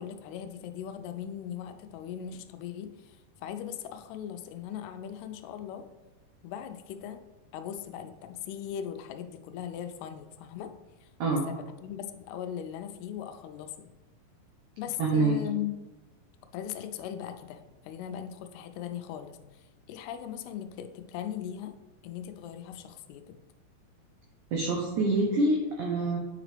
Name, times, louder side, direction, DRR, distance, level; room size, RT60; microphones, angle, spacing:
voice 1, 0.0-5.9 6.4-7.2 7.5-10.7 11.0-11.1 11.5-13.9 14.8-15.7 16.5-21.8 22.0-23.4, left 9 dB, 85° left, 8 dB, 2.6 m, -39 dB
voice 2, 15.0-15.4 24.5-26.2, right 2 dB, 85° right, -1 dB, 1.7 m, -26 dB
8.7 x 4.9 x 3.3 m, 1.1 s
omnidirectional pair, 4.6 m